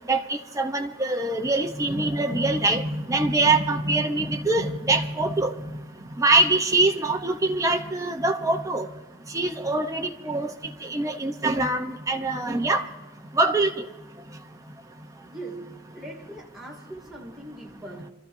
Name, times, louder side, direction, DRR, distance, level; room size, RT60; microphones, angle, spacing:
voice 1, 0.1-5.5 6.2-8.9 9.3-10.5 10.9-12.8 13.4-13.7, right 2 dB, 15° right, 4 dB, 0.8 m, -23 dB
voice 2, 15.3-18.1, right 1 dB, ahead, -4 dB, 2.4 m, -41 dB
27.5 x 13.5 x 2.7 m, 1.1 s
head